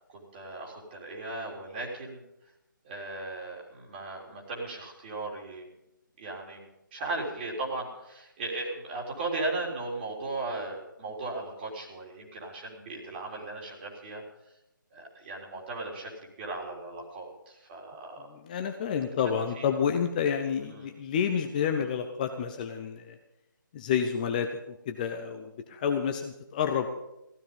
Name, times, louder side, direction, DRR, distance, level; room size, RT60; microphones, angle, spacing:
voice 1, 0.1-2.2 2.8-5.7 6.2-14.2 14.9-16.1 16.4-18.3 19.2-19.7 20.6-20.9, right 2 dB, 30° right, -2 dB, 3.7 m, -37 dB
voice 2, 18.5-23.1 23.7-24.5 24.9-26.9, left 7 dB, 25° left, 4 dB, 0.8 m, -29 dB
15.5 x 13.0 x 5.4 m, 0.87 s
figure-of-eight pair, 150°, 11 cm